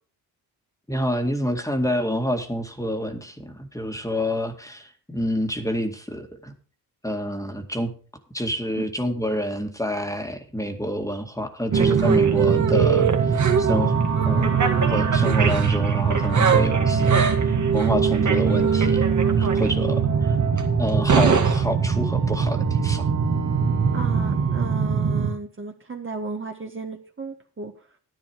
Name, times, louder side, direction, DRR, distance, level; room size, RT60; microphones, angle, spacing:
voice 1, 0.9-6.5 7.0-7.9 8.3-14.0 14.3-14.5 14.9-19.0 19.4-20.4 20.8-23.1, equal, 10° left, 5 dB, 2.2 m, -28 dB
sound 1, 11.7-25.3, right 6 dB, 45° right, 2.2 m, -20 dB
voice 2, 23.9-27.7, right 3 dB, 30° right, 3 dB, 1.8 m, -34 dB
10.5 x 10.5 x 4.7 m, 0.40 s
supercardioid pair, 65°, 40 cm